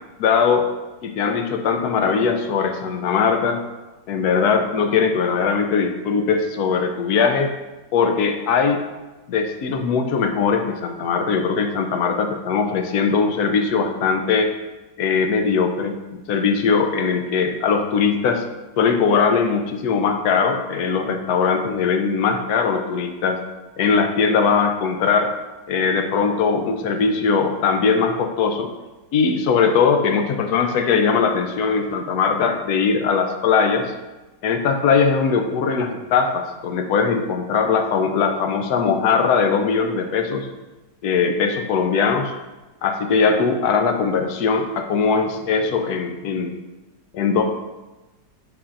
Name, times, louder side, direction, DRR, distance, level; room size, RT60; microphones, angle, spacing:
voice 1, 0.2-0.7 1.0-3.6 4.1-7.5 7.9-8.8 9.3-14.5 15.0-18.4 18.8-23.4 23.8-25.3 25.7-28.7 29.1-33.9 34.4-40.5 41.0-42.3 42.8-46.6 47.1-47.4, left 5 dB, 75° left, 5 dB, 1.1 m, -20 dB
8.4 x 4.8 x 2.5 m, 1.1 s
omnidirectional pair, 1.8 m